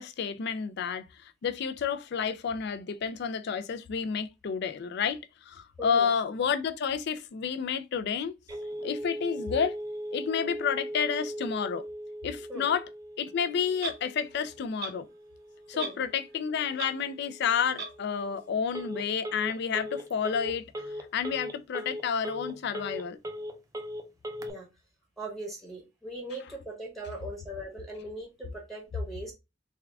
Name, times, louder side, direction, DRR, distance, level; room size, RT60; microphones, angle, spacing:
voice 1, 0.0-5.2 5.5-8.3 8.8-9.7 10.1-11.8 12.2-12.9 13.2-15.1 15.7-20.6 21.1-23.2, left 7 dB, 60° left, 0.4 m, -30 dB
voice 2, 5.8-6.1 12.5-12.7 15.7-15.9 24.4-24.7 25.2-29.3, right 1 dB, ahead, 0.9 m, -40 dB
Telephone, 8.5-24.5, equal, 20° right, 0.4 m, -39 dB
Clock, 13.8-14.0 14.8-14.9 15.8-16.0 16.3-16.4 16.7-16.9 17.8-17.9, right 4 dB, 55° right, 0.8 m, -35 dB
3.5 x 2.3 x 3.4 m
head